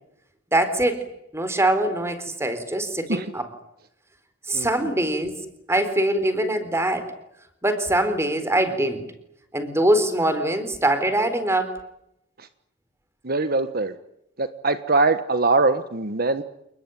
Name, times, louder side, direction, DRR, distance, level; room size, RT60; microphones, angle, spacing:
voice 1, 0.5-1.1 1.3-3.5 4.5-5.3 5.7-7.1 7.6-9.0 9.5-11.8, right 1 dB, 15° right, 10 dB, 4.1 m, -23 dB
voice 2, 13.2-13.9 14.4-16.4, right 3 dB, 50° right, 10 dB, 1.4 m, -22 dB
29.0 x 20.5 x 9.3 m, 0.80 s
head